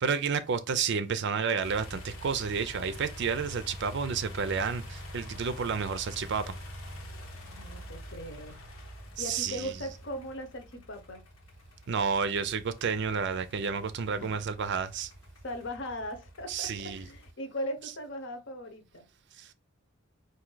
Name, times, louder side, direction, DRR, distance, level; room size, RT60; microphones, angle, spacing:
voice 1, 0.0-6.5 9.2-9.7 11.9-15.1 16.5-17.0 19.4-19.5, right 5 dB, 55° right, 0.4 m, -30 dB
sound 1, 1.6-17.3, equal, 90° left, 1.1 m, -46 dB
voice 2, 7.5-8.6 9.2-11.2 14.1-14.3 15.4-19.1, equal, 60° left, 0.9 m, -39 dB
4.4 x 2.7 x 3.8 m
head